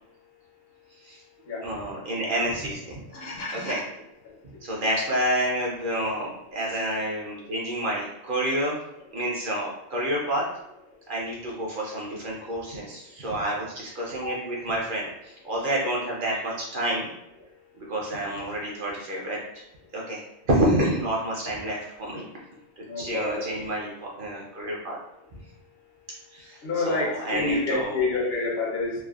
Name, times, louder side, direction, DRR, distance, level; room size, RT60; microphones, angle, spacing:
voice 1, 1.6-3.0 3.5-3.8 4.6-8.8 9.1-10.4 11.1-17.1 17.8-19.6 19.9-20.2 20.5-22.3 23.0-25.0 26.3-28.0, right 1 dB, 55° right, -3 dB, 0.7 m, -29 dB
voice 2, 3.1-3.8 14.2-14.4 22.9-23.5 26.6-29.0, left 3 dB, 65° left, -3 dB, 0.9 m, -28 dB
3.2 x 2.1 x 2.3 m, 0.80 s
omnidirectional pair, 1.1 m